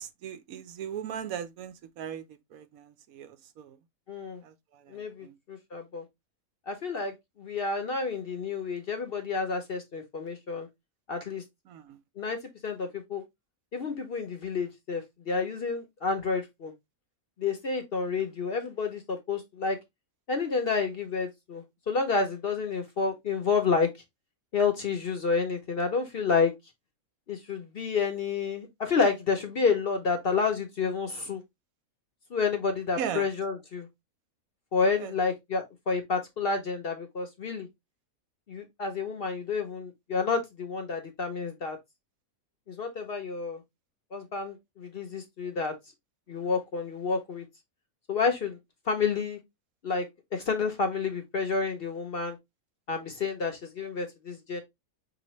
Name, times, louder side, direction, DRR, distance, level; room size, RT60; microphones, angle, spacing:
voice 1, 0.0-2.3 2.5-3.8 4.4-5.3 11.7-12.0 33.0-33.3 35.0-35.1, right 8 dB, 75° right, 1.0 m, -38 dB
voice 2, 4.1-4.4 4.9-6.0 6.7-10.7 11.1-11.4 12.2-13.2 13.7-16.7 17.4-19.8 20.3-23.9 24.5-26.5 27.3-31.4 32.3-33.9 34.7-37.7 38.5-41.8 42.7-43.6 44.1-45.7 46.3-47.4 48.1-48.6 48.9-49.4 49.8-50.1 50.3-52.4 52.9-54.6, left 4 dB, 50° left, 0.8 m, -29 dB
5.3 x 3.0 x 3.0 m
omnidirectional pair, 1.6 m